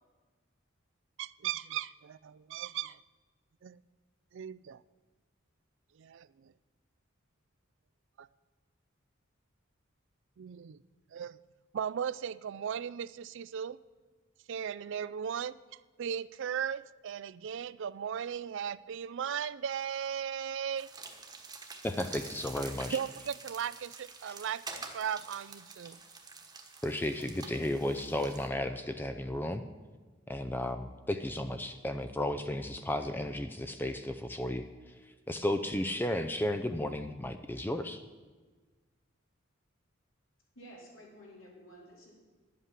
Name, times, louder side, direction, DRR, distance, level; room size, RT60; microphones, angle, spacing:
voice 1, 1.2-3.0 3.6-3.8 4.3-4.8 6.0-6.5 8.2-8.3 10.4-10.8 11.1-11.4 11.7-13.8 14.5-15.6 16.0-20.9 22.9-26.0, right 8 dB, 65° right, 18 dB, 0.4 m, -37 dB
sound 1, 20.8-28.5, right 4 dB, 20° right, 1.2 m, -47 dB
voice 2, 21.8-23.0 24.3-24.4 26.8-29.6 30.3-34.7 35.3-38.0, left 1 dB, 10° left, 8 dB, 0.4 m, -34 dB
voice 3, 40.5-42.1, equal, 75° left, -3 dB, 3.9 m, -52 dB
11.0 x 8.2 x 7.4 m, 1.4 s
head